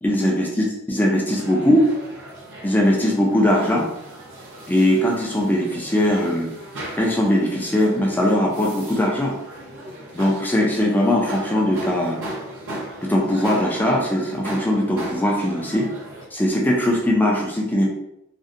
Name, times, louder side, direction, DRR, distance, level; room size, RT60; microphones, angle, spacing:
voice 1, 0.0-1.9 2.6-3.9 4.7-6.5 6.9-9.4 10.1-12.2 13.0-15.9 16.3-17.9, left 1 dB, 10° left, -2 dB, 0.3 m, -20 dB
sound 1, 1.3-16.3, right 1 dB, 60° right, 0.6 m, -37 dB
2.6 x 2.1 x 2.5 m, 0.80 s
head